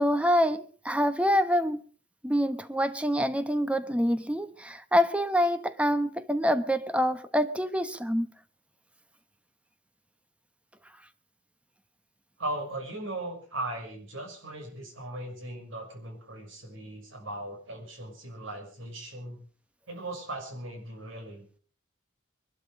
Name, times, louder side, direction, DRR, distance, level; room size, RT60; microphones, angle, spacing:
voice 1, 0.0-1.8 2.2-8.3, equal, 5° right, 0.9 m, -26 dB
voice 2, 12.4-19.4 19.9-21.4, right 1 dB, 75° right, 6.0 m, -38 dB
22.0 x 12.5 x 4.9 m
head